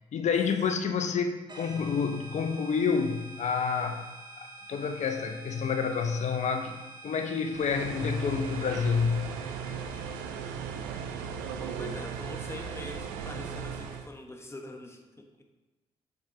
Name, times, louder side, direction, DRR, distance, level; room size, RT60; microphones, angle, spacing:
voice 1, 0.1-4.1 4.4-6.8 7.0-9.3, left 6 dB, 55° left, 6 dB, 0.7 m, -28 dB
sound 1, 1.5-10.9, right 3 dB, 30° right, 1.1 m, -48 dB
sound 2, 7.5-14.1, right 6 dB, 80° right, 0.5 m, -37 dB
voice 2, 11.6-15.4, left 1 dB, 20° left, 3 dB, 1.2 m, -44 dB
7.2 x 6.0 x 2.8 m, 1.1 s
hypercardioid pair, 40°, 14 cm